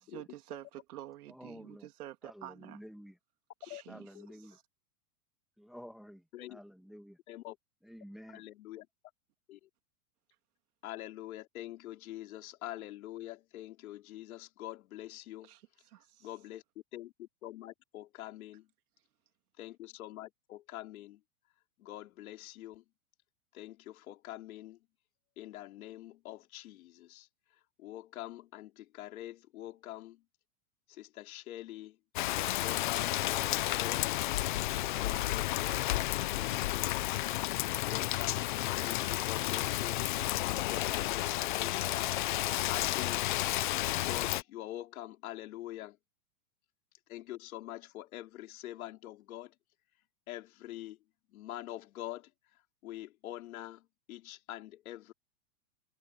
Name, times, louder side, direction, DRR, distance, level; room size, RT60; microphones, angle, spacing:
voice 1, 0.0-2.8 3.6-4.1 4.4-4.6 15.4-16.3, right 13 dB, 75° right, 3.1 m, -48 dB
voice 2, 1.3-1.9 2.2-3.2 3.9-4.6 5.6-7.2 7.8-8.4, equal, ahead, 1.4 m, -51 dB
voice 3, 8.3-8.9 9.5-9.6 10.8-15.5 16.2-16.6 16.9-18.7 19.6-21.2 21.8-22.8 23.5-24.8 25.4-27.3 27.8-30.2 30.9-32.0 32.6-34.3 34.9-37.0 37.8-40.1 40.4-42.1 42.7-43.3 44.0-46.0 47.1-49.5 50.3-51.0 51.3-52.3 52.8-53.8 54.1-55.1, left 14 dB, 65° left, 4.2 m, -45 dB
Rain, 32.2-44.4, left 16 dB, 35° left, 0.4 m, -32 dB
supercardioid pair, 160°, 45 cm